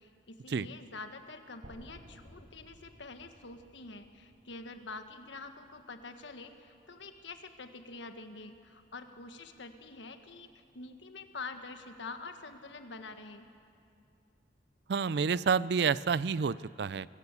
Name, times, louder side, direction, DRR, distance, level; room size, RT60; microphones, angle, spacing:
voice 1, 0.0-13.4, left 3 dB, 80° left, 7 dB, 1.5 m, -46 dB
sound 1, 1.6-5.7, equal, 80° right, 2.8 m, -56 dB
voice 2, 14.9-17.1, right 6 dB, 60° right, 19 dB, 0.4 m, -29 dB
25.0 x 14.0 x 8.3 m, 2.4 s
head